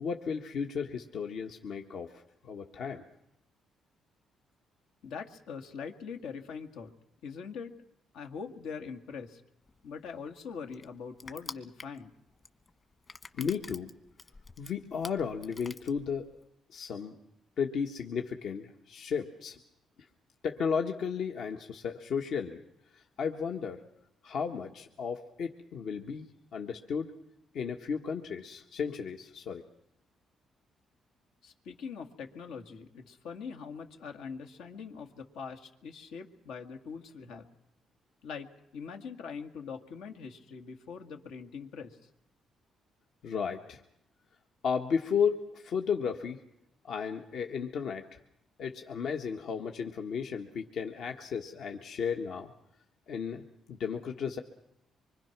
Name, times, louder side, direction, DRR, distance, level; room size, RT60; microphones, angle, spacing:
voice 1, 0.0-3.0 13.3-13.9 14.6-16.2 16.7-17.2 17.6-19.6 20.4-22.6 22.9-23.8 24.2-26.3 26.5-27.1 27.5-29.6 43.2-43.8 44.6-46.4 46.8-48.2 48.6-52.5 53.1-54.4, left 6 dB, 70° left, 3 dB, 1.5 m, -34 dB
voice 2, 5.0-6.9 7.2-7.8 8.1-9.4 9.8-12.1 31.4-37.5 38.2-42.0, left 6 dB, 90° left, 5 dB, 2.2 m, -42 dB
Crushing, 9.7-16.5, left 4 dB, 35° left, 1.4 m, -48 dB
25.0 x 24.5 x 6.1 m, 0.81 s
cardioid pair, 90°, 0 cm